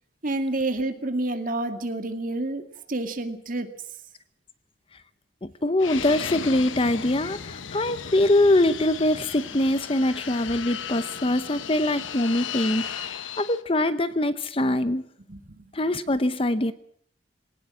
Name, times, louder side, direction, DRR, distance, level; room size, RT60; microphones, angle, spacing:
voice 1, 0.2-2.6 2.9-3.7 15.3-15.7, right 2 dB, 45° right, 7 dB, 2.2 m, -28 dB
voice 2, 5.4-15.0 15.7-16.7, left 1 dB, 30° left, 13 dB, 0.8 m, -23 dB
Fixed-wing aircraft airplane, 5.8-13.6, left 7 dB, 85° left, 1.0 m, -35 dB
20.0 x 18.5 x 7.6 m, 0.62 s
head